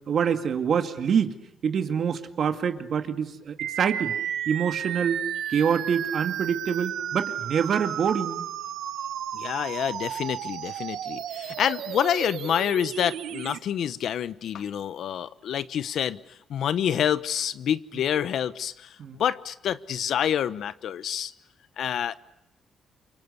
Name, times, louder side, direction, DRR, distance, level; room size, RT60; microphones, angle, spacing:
voice 1, 0.1-1.4 1.6-4.1 4.5-5.2 5.5-8.5 19.0-19.2, right 7 dB, 60° right, 6 dB, 2.2 m, -26 dB
sound 1, 3.6-13.6, right 10 dB, 80° right, 1.1 m, -33 dB
voice 2, 9.3-16.2 16.5-21.3 21.8-22.2, left 9 dB, 70° left, 15 dB, 1.0 m, -27 dB
28.5 x 24.5 x 8.2 m, 0.85 s
cardioid pair, 90°, 0 cm